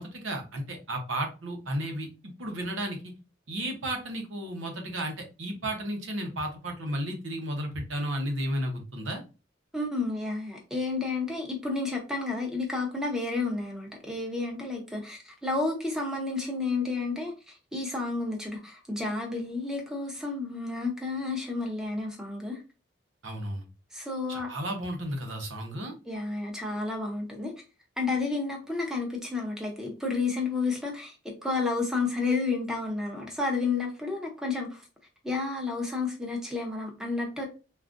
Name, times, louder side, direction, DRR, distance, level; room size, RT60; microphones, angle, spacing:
voice 1, 0.0-2.1 2.4-3.0 3.5-9.2 23.2-23.6 24.3-25.9, right 1 dB, 85° right, 0.8 m, -33 dB
voice 2, 9.7-17.3 17.7-22.6 23.9-24.5 26.1-27.5 28.0-34.8 35.2-37.5, left 3 dB, 5° right, 0.6 m, -31 dB
3.6 x 2.4 x 2.5 m
head